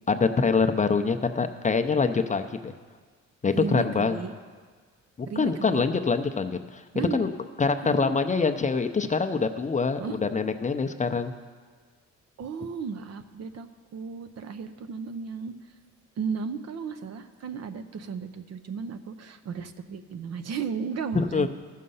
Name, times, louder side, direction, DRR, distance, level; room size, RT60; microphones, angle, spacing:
voice 1, 0.1-2.7 3.4-4.2 5.2-6.8 7.1-7.3 7.6-11.3 21.1-21.5, left 4 dB, 25° left, 7 dB, 0.6 m, -25 dB
voice 2, 3.5-4.3 5.3-5.8 6.9-7.2 7.8-8.1 10.0-10.2 12.4-15.5 16.2-21.5, right 6 dB, 60° right, 9 dB, 0.8 m, -34 dB
14.0 x 6.5 x 5.5 m, 1.5 s
cardioid pair, 90°, 30 cm